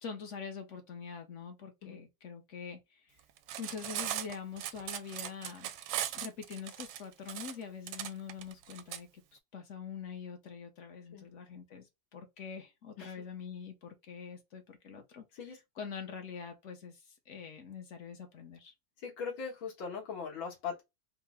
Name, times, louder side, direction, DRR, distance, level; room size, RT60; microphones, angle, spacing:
voice 1, 0.0-3.2 3.6-5.7 6.1-18.7, left 6 dB, 60° left, 0.8 m, -45 dB
Cutlery silverware, 3.4-9.0, right 11 dB, 85° right, 1.4 m, -38 dB
voice 2, 19.0-20.8, left 6 dB, 80° left, 2.1 m, -40 dB
4.6 x 2.1 x 3.5 m
omnidirectional pair, 2.1 m